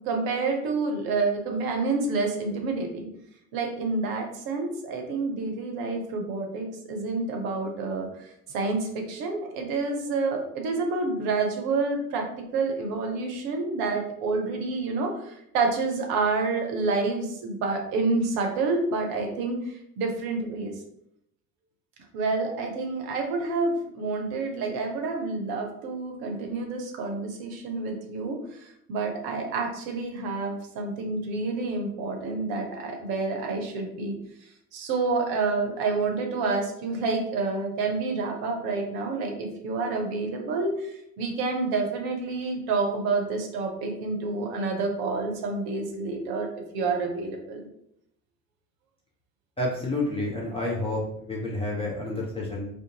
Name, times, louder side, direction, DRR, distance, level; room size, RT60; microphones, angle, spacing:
voice 1, 0.1-3.1 3.5-12.2 12.5-19.6 20.0-20.8 22.1-34.1 34.7-47.7, right 3 dB, 50° right, 3 dB, 0.7 m, -28 dB
voice 2, 49.6-51.0 51.3-52.7, left 2 dB, 15° left, -4 dB, 0.4 m, -29 dB
2.4 x 2.3 x 2.7 m, 0.76 s
figure-of-eight pair, 50°, 47 cm